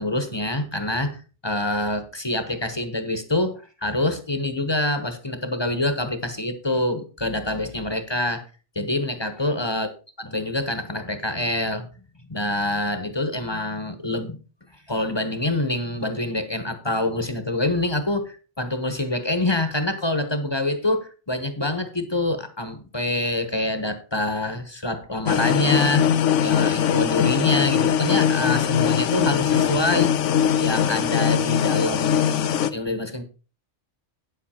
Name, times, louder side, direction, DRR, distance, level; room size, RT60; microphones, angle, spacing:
voice 1, 0.0-8.4 8.7-9.9 10.2-11.9 12.3-14.4 14.9-26.1 26.4-30.1 30.6-33.2, left 1 dB, 25° left, 9 dB, 0.9 m, -26 dB
sound 1, 25.3-32.7, left 9 dB, 85° left, 1.0 m, -21 dB
9.3 x 7.6 x 4.3 m, 0.35 s
omnidirectional pair, 1.2 m